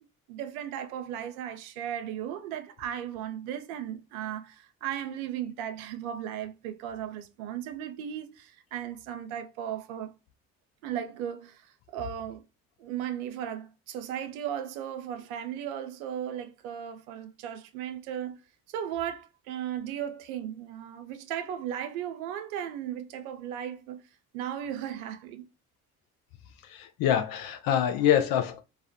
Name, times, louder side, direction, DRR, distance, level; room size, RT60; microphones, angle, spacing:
voice 1, 0.3-10.1 10.8-12.4 12.8-18.4 18.7-24.1 24.3-25.5, right 10 dB, 75° right, 0.5 m, -36 dB
voice 2, 26.7-28.6, left 10 dB, 55° left, 0.5 m, -25 dB
2.3 x 2.1 x 2.6 m
figure-of-eight pair, 50°, 43 cm